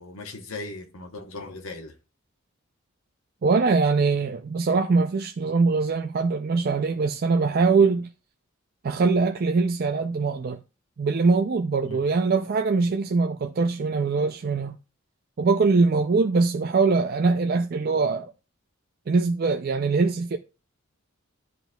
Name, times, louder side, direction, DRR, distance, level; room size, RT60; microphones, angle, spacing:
voice 1, 0.0-1.9 11.8-12.0, left 2 dB, 85° left, 1.0 m, -38 dB
voice 2, 3.4-8.1 8.8-10.6 11.0-14.8 15.4-18.3 19.1-20.4, right 4 dB, 45° right, 0.4 m, -22 dB
12.0 x 4.1 x 2.3 m
head